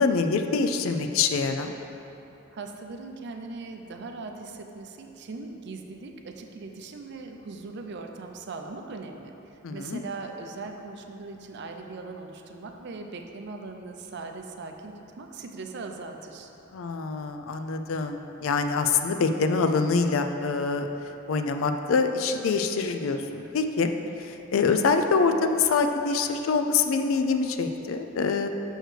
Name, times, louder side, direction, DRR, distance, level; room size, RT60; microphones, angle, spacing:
voice 1, 0.0-1.7 9.6-10.0 16.7-20.9 21.3-23.9 24.2-28.5, left 4 dB, 80° left, 6 dB, 0.4 m, -25 dB
voice 2, 2.5-9.3 9.7-16.5, right 3 dB, 55° right, 4 dB, 0.5 m, -39 dB
6.3 x 6.3 x 3.3 m, 3.0 s
head